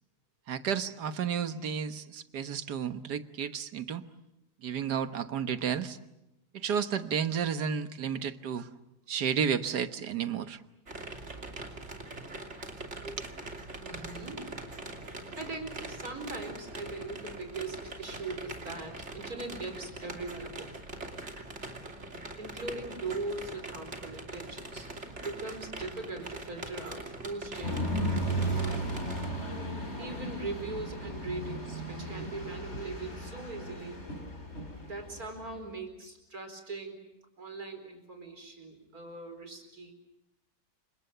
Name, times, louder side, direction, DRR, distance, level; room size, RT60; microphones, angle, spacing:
voice 1, 0.5-4.0 4.6-6.0 6.5-8.7 9.1-10.6 13.0-13.2, right 7 dB, 80° right, 10 dB, 1.8 m, -32 dB
sound 1, 10.9-29.3, right 2 dB, 45° right, 3.1 m, -42 dB
voice 2, 13.8-14.5 15.4-21.0 22.4-28.0 28.4-29.0 30.0-34.0 34.8-37.0 37.4-39.9, right 3 dB, 65° right, 6 dB, 5.0 m, -40 dB
sound 2, 27.6-35.6, right 1 dB, 40° left, 5.2 m, -35 dB
29.5 x 26.0 x 6.8 m, 0.91 s
omnidirectional pair, 1.7 m